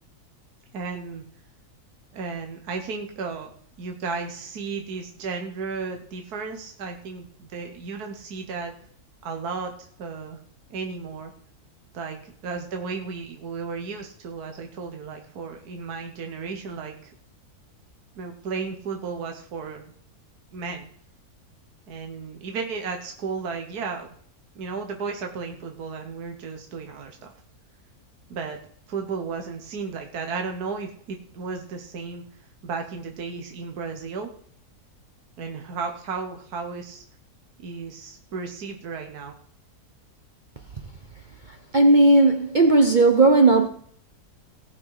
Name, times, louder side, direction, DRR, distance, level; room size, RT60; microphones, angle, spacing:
voice 1, 0.7-1.2 2.1-3.5 3.8-8.7 9.2-10.4 10.7-11.3 11.9-17.1 18.2-19.8 20.5-20.9 21.9-24.1 24.5-27.3 28.3-28.6 28.9-32.2 32.6-34.3 35.4-37.0 37.6-39.3, right 5 dB, 75° right, 1.7 m, -34 dB
voice 2, 41.5-43.7, right 2 dB, 40° right, 0.8 m, -16 dB
18.0 x 6.1 x 4.8 m
omnidirectional pair, 1.7 m